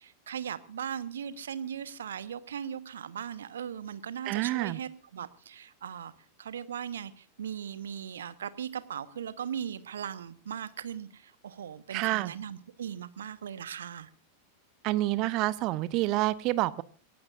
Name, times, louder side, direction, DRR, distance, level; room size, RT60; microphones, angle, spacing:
voice 1, 0.0-6.1 6.4-14.1, right 8 dB, 65° right, 1.2 m, -38 dB
voice 2, 4.3-4.8 11.9-12.3 14.8-16.8, right 18 dB, 40° right, 0.7 m, -28 dB
27.5 x 15.5 x 2.6 m
figure-of-eight pair, 90°, 0 cm